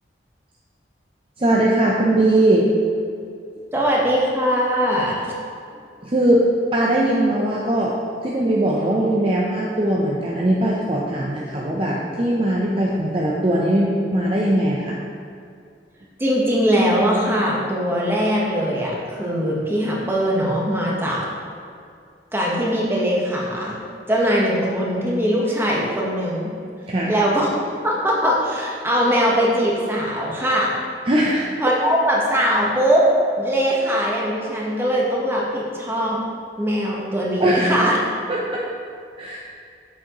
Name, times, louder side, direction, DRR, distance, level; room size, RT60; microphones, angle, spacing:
voice 1, 1.4-2.7 6.0-6.4 6.7-8.0 8.2-15.0 26.9-27.1 31.1-31.4 37.4-37.7 38.3-38.7 39.2-39.4, right 1 dB, 30° right, -3 dB, 0.6 m, -20 dB
voice 2, 3.7-5.3 16.2-21.2 22.3-23.8 24.1-26.5 27.1-27.5 27.8-30.7 31.6-33.0 33.4-36.2 36.6-38.0, equal, 15° right, -4 dB, 1.1 m, -21 dB
7.3 x 7.0 x 3.0 m, 2.3 s
head